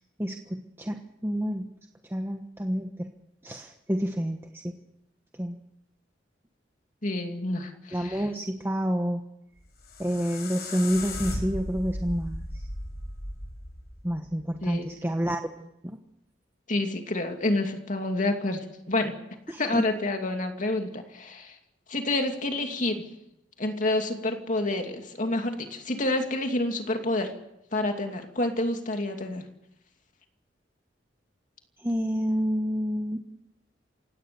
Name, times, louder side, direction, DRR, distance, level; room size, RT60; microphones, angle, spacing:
voice 1, 0.2-1.7 2.1-3.1 3.4-4.7 5.4-5.6 7.9-9.2 10.0-12.4 14.0-15.4 15.8-16.0 19.5-19.6 31.8-33.2, equal, 15° right, 4 dB, 1.2 m, -29 dB
voice 2, 7.0-8.3 14.6-15.0 16.7-19.2 19.6-21.6 21.9-23.0 23.6-27.3 27.7-29.4, left 2 dB, 45° left, 4 dB, 2.6 m, -28 dB
sound 1, 9.6-14.7, left 1 dB, 60° left, 6.6 m, -36 dB
28.0 x 18.0 x 7.0 m, 0.83 s
head